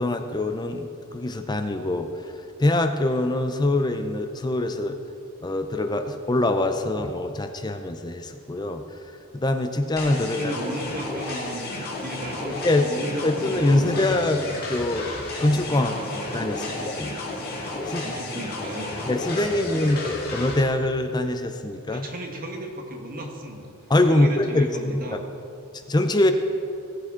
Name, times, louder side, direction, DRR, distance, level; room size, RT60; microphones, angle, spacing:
voice 1, 0.0-2.3 2.6-5.0 5.4-9.0 9.3-10.5 12.6-12.9 13.2-14.4 14.7-15.1 15.4-15.9 16.3-17.1 17.9-18.0 19.1-22.1 23.9-25.0 25.9-26.3, left 2 dB, 20° left, 7 dB, 0.5 m, -24 dB
sound 1, 10.0-20.6, left 2 dB, 45° left, 2.0 m, -32 dB
voice 2, 10.3-14.0 15.8-16.3 16.5-16.8 18.0-18.9 19.5-19.9 21.9-23.7 24.1-25.2, right 1 dB, 40° right, 1 dB, 1.4 m, -35 dB
17.5 x 8.7 x 3.7 m, 2.7 s
head